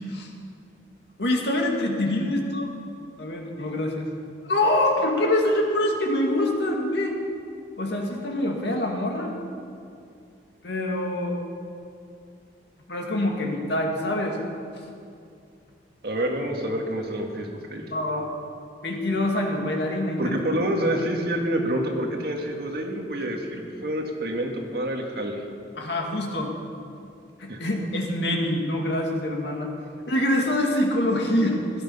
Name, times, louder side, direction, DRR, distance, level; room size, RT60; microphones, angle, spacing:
voice 1, 1.2-2.7 3.2-4.1 4.4-7.2 7.8-9.3 10.6-11.4 12.9-14.4 17.9-18.3 18.8-20.4 20.9-21.0 25.8-26.5 27.4-29.7 30.1-31.6, left 1 dB, 70° left, 1 dB, 2.3 m, -25 dB
voice 2, 16.0-17.9 20.2-25.4 27.5-27.6, right 1 dB, 60° right, 1 dB, 1.9 m, -27 dB
16.5 x 12.0 x 5.5 m, 2.4 s
head